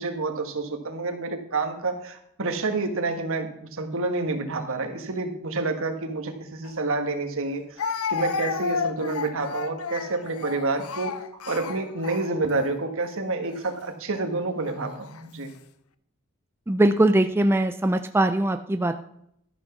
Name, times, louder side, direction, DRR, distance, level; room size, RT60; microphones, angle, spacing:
voice 1, 0.0-7.6 8.1-11.1 11.5-15.5, right 3 dB, 65° right, 5 dB, 1.5 m, -28 dB
Speech, 6.6-6.7 7.8-12.7 13.4-13.7 14.6-15.2, left 5 dB, 70° left, 0.6 m, -32 dB
voice 2, 16.7-19.0, right 1 dB, 10° right, 7 dB, 0.4 m, -21 dB
12.5 x 6.0 x 5.9 m, 0.73 s
head